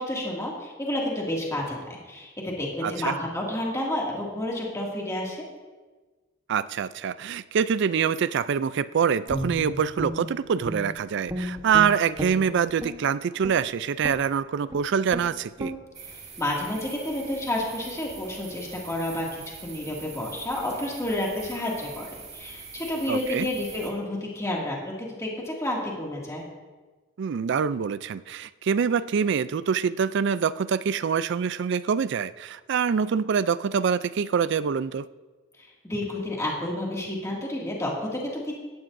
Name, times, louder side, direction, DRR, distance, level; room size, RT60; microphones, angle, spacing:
voice 1, 0.0-5.4 16.4-26.4 35.6-38.5, left 1 dB, 15° left, -3 dB, 2.2 m, -30 dB
voice 2, 2.8-3.2 6.5-15.7 23.1-23.5 27.2-35.1, right 7 dB, 65° right, 16 dB, 0.4 m, -25 dB
Guitar, 9.3-11.0 11.3-13.0 13.4-13.6 14.0-14.3 14.7-14.8 15.1-15.3 15.6-15.8, right 1 dB, 20° right, 1.1 m, -33 dB
sound 1, 15.9-23.9, right 5 dB, 35° right, 1.6 m, -43 dB
16.5 x 12.0 x 2.6 m, 1.3 s
head